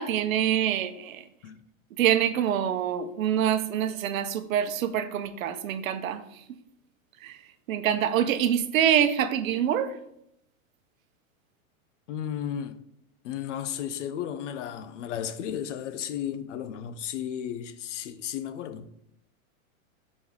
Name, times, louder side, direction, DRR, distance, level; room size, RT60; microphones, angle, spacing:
voice 1, 0.0-1.2 2.0-6.2 7.2-7.4 7.7-9.9, right 9 dB, 70° right, 0.8 m, -25 dB
voice 2, 12.1-12.8 13.2-18.9, left 9 dB, 60° left, 0.7 m, -34 dB
5.3 x 5.2 x 4.8 m
supercardioid pair, 155°, 42 cm